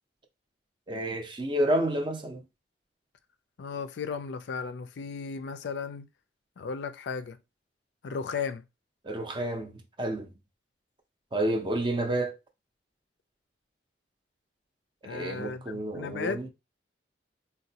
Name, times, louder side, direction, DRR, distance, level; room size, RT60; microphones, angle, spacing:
voice 1, 0.9-2.4 9.0-10.3 11.3-12.4 15.0-16.5, right 1 dB, 25° right, 0.5 m, -30 dB
voice 2, 3.6-6.1 6.6-7.4 8.0-8.6 15.0-16.5, left 5 dB, 70° left, 0.4 m, -35 dB
4.0 x 2.2 x 2.7 m
head